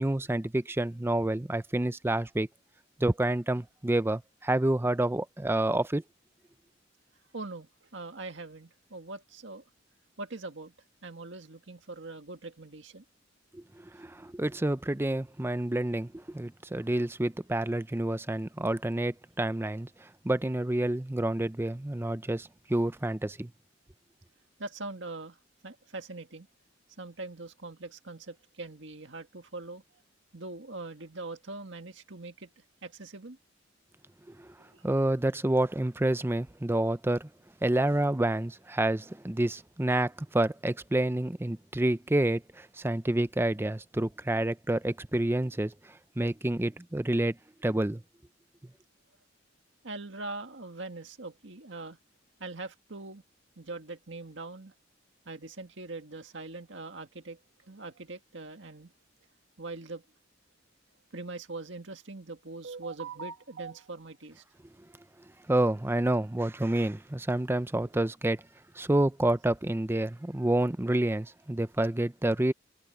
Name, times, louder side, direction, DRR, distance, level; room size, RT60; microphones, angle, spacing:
voice 1, 0.0-2.5 3.0-6.0 13.5-13.6 14.0-19.9 20.2-23.5 34.4-34.5 34.8-37.3 37.6-45.7 46.2-47.4 47.6-48.0 65.5-68.4 68.8-72.5, right 1 dB, 10° right, 0.6 m, -28 dB
voice 2, 7.3-7.7 7.9-9.6 10.2-10.7 11.0-13.0 24.6-25.4 25.6-26.5 27.0-29.8 30.3-32.5 32.8-33.4 34.7-34.8 49.8-52.0 52.4-53.2 53.6-54.7 55.3-57.4 57.7-58.9 59.6-60.0 61.1-64.4, right 3 dB, 70° right, 2.0 m, -42 dB
head